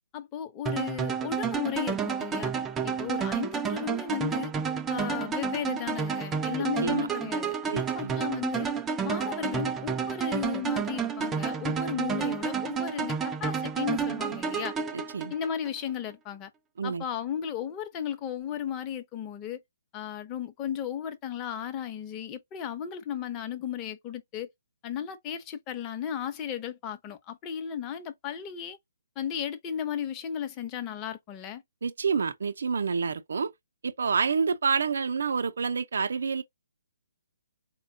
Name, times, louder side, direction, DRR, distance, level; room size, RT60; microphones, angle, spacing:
voice 1, 0.1-2.5 2.8-4.5 4.9-8.7 9.0-14.7 15.3-16.5 16.8-19.6 19.9-24.5 24.8-28.8 29.2-31.6, left 9 dB, 25° left, 0.8 m, -35 dB
sound 1, 0.7-15.7, right 6 dB, 15° right, 0.4 m, -30 dB
voice 2, 7.7-8.2 14.9-15.3 16.8-17.0 31.8-33.5 33.8-36.4, right 5 dB, 70° right, 0.5 m, -28 dB
4.2 x 2.2 x 2.6 m
hypercardioid pair, 145°, 0 cm